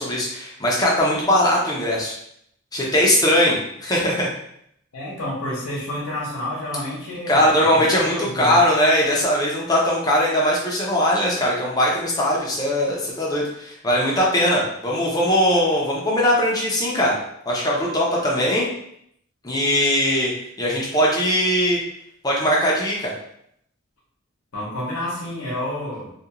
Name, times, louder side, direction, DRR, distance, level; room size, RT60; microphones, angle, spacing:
voice 1, 0.0-2.1 2.7-4.3 7.3-17.1 17.5-18.7 19.4-20.3 20.6-21.8 22.2-23.1, equal, 20° left, -4 dB, 0.5 m, -20 dB
voice 2, 4.9-8.6 24.5-26.1, left 1 dB, 90° left, -5 dB, 0.8 m, -29 dB
2.4 x 2.3 x 2.8 m, 0.71 s
head